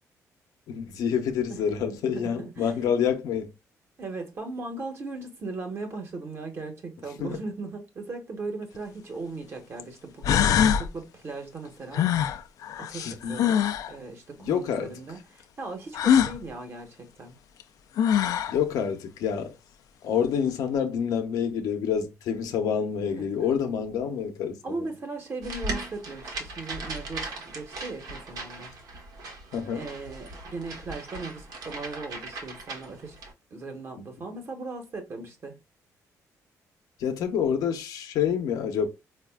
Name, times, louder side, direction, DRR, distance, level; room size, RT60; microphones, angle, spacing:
voice 1, 0.7-3.5 7.2-7.4 13.0-13.4 14.4-14.9 18.5-19.5 20.0-24.9 29.5-29.9 34.2-34.3 37.0-38.9, left 7 dB, 85° left, 0.8 m, -27 dB
voice 2, 2.1-2.7 4.0-12.1 12.8-17.4 23.0-23.3 24.6-28.7 29.7-33.2 33.5-35.6, right 3 dB, 40° right, 1.1 m, -38 dB
sound 1, 8.7-8.8 9.8-9.9 10.2-10.9 11.9-13.9 15.9-16.4 17.6-17.7 18.0-18.6, left 9 dB, 70° left, 0.4 m, -23 dB
sound 2, 25.4-33.3, right 2 dB, 75° right, 0.9 m, -38 dB
4.1 x 2.4 x 2.3 m
cardioid pair, 110°, 6 cm